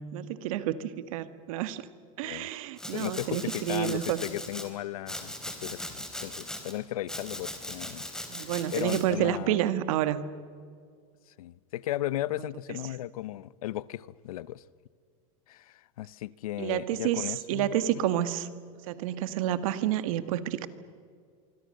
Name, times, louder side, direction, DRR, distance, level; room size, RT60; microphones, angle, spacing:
voice 1, 0.1-1.8 2.2-4.2 8.3-10.3 16.6-18.5 18.9-20.7, right 12 dB, 75° right, 1.6 m, -29 dB
Domestic sounds home sounds, 2.8-4.7 5.1-6.7 7.1-9.0, left 1 dB, 5° left, 3.5 m, -39 dB
voice 2, 2.9-8.1 8.4-9.6 11.4-14.6 15.5-18.1, left 14 dB, 90° left, 0.8 m, -36 dB
25.0 x 24.5 x 6.7 m
supercardioid pair, 125°, 18 cm